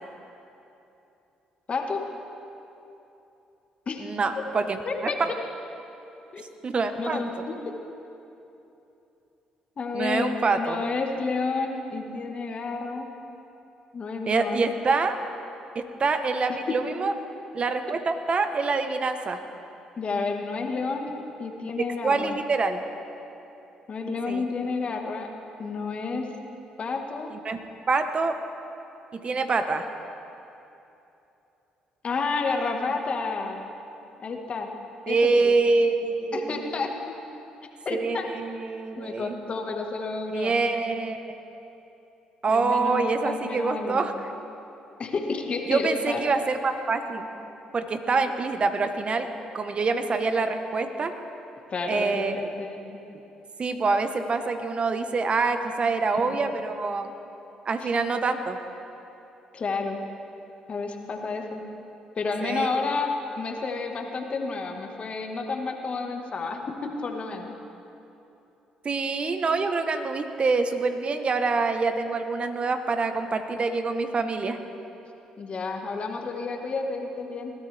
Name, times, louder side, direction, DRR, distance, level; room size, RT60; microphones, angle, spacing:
voice 1, 1.7-2.0 3.8-4.1 4.8-5.2 6.3-6.4 7.0-7.6 9.8-13.1 13.9-14.6 20.0-21.1 21.4-22.4 23.9-25.3 25.6-26.3 26.8-27.3 32.0-33.6 34.2-34.7 35.1-35.5 36.3-36.9 37.8-38.3 38.9-40.5 42.5-44.1 45.0-46.2 51.7-53.0 56.1-56.4 57.8-57.9 59.5-60.0 60.7-61.6 62.2-67.5 75.4-77.5, left 4 dB, 45° left, 3 dB, 1.7 m, -30 dB
voice 2, 4.0-5.3 6.6-7.5 9.9-10.8 14.3-15.2 15.7-17.1 17.5-19.4 21.8-22.8 24.3-24.5 27.3-27.6 27.9-28.4 29.1-29.8 35.1-36.7 37.9-39.4 40.3-41.2 42.4-44.1 45.7-47.3 47.7-49.3 49.5-51.1 51.9-52.4 53.6-57.1 57.6-58.6 62.4-62.7 68.8-74.6, right 4 dB, 40° right, 8 dB, 1.1 m, -26 dB
20.5 x 13.5 x 3.5 m, 2.9 s
supercardioid pair, 60°, 3 cm